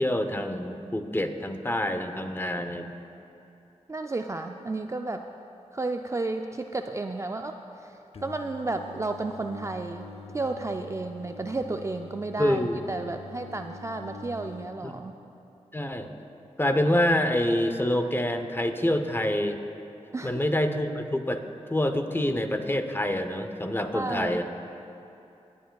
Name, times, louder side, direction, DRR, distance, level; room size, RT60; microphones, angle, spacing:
voice 1, 0.0-2.9 12.4-12.8 14.8-15.0 15.7-16.1 16.6-19.6 20.2-21.4 21.7-24.4, left 1 dB, 20° left, 7 dB, 0.8 m, -26 dB
voice 2, 3.9-5.3 5.7-10.1 10.3-15.1 20.1-20.4 23.9-24.4, right 2 dB, 25° right, 5 dB, 0.3 m, -32 dB
Singing, 8.1-14.7, left 3 dB, 55° left, 0.7 m, -45 dB
19.5 x 9.3 x 2.3 m, 2.8 s
cardioid pair, 50°, 12 cm